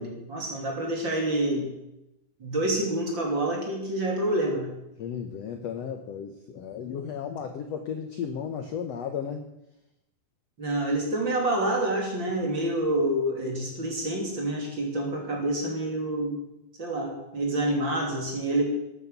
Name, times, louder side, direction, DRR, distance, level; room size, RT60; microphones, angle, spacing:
voice 1, 0.0-1.7 2.4-4.7 10.6-16.4 16.8-18.6, right 1 dB, 30° right, 0 dB, 3.2 m, -27 dB
voice 2, 5.0-9.5 17.5-17.6, left 7 dB, 80° left, 6 dB, 1.4 m, -34 dB
15.0 x 9.8 x 6.8 m, 0.90 s
omnidirectional pair, 4.4 m